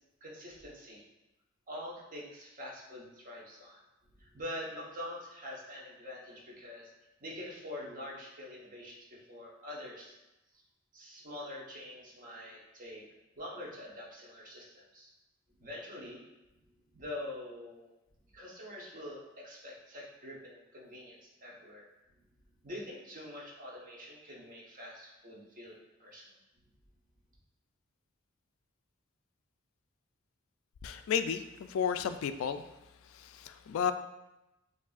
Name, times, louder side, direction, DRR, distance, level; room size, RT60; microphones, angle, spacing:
voice 1, 0.2-1.0 1.7-3.8 4.2-6.9 7.2-10.2 10.9-13.0 13.4-15.1 15.6-16.2 16.5-16.6 16.9-17.9 18.3-21.9 22.6-26.3, left 1 dB, 40° right, -3 dB, 1.0 m, -45 dB
voice 2, 30.8-32.7 33.0-33.9, left 7 dB, 75° left, 11 dB, 0.3 m, -33 dB
6.8 x 2.6 x 2.4 m, 0.95 s
head